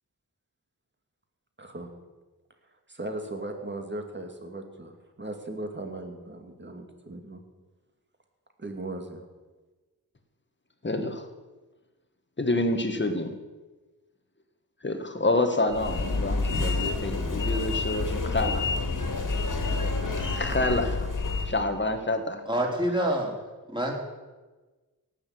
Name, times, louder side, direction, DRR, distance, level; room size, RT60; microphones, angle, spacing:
voice 1, 1.6-1.9 2.9-7.4 8.6-9.2, right 2 dB, 30° right, 4 dB, 2.6 m, -38 dB
voice 2, 10.8-11.3 12.4-13.3 14.8-18.9 20.0-21.1 21.5-22.4, left 2 dB, 30° left, 7 dB, 1.8 m, -28 dB
sound 1, 15.7-21.6, left 3 dB, 55° left, 2.7 m, -28 dB
voice 3, 22.5-23.4 23.7-23.9, right 1 dB, 10° right, -1 dB, 4.0 m, -26 dB
17.5 x 7.1 x 8.0 m, 1.2 s
cardioid pair, 65°, 38 cm